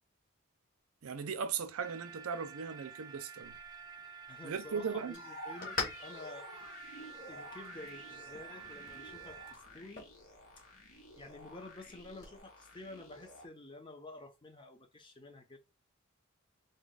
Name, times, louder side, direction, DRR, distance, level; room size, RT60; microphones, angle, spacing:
voice 1, 1.0-3.6 4.4-5.1, right 6 dB, 85° right, 0.5 m, -38 dB
sound 1, 1.8-9.6, right 6 dB, 20° right, 0.5 m, -50 dB
sound 2, 3.4-12.4, left 3 dB, 40° left, 1.4 m, -47 dB
voice 2, 4.0-6.5 7.0-10.1 10.6-10.7 11.2-15.6, left 2 dB, 25° left, 0.6 m, -51 dB
sound 3, 5.1-13.4, left 1 dB, 80° left, 1.6 m, -51 dB
3.9 x 2.3 x 3.9 m
head